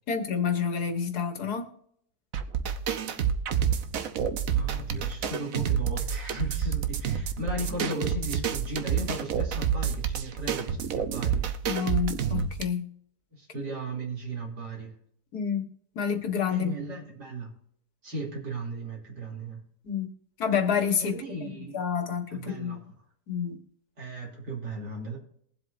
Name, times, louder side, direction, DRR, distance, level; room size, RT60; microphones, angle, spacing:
voice 1, 0.1-1.7 11.6-12.9 15.3-15.6 16.0-16.7 19.8-20.1 20.4-21.1 21.4-22.8 23.3-23.6, left 7 dB, 70° left, 7 dB, 1.8 m, -28 dB
sound 1, 2.3-12.6, right 8 dB, 60° right, 1.1 m, -28 dB
voice 2, 4.5-11.5 13.3-14.9 16.5-17.5 18.0-19.6 21.0-21.8 22.3-22.8 24.0-25.2, right 1 dB, 80° right, -2 dB, 3.6 m, -36 dB
22.0 x 7.8 x 2.6 m, 0.67 s
omnidirectional pair, 1.8 m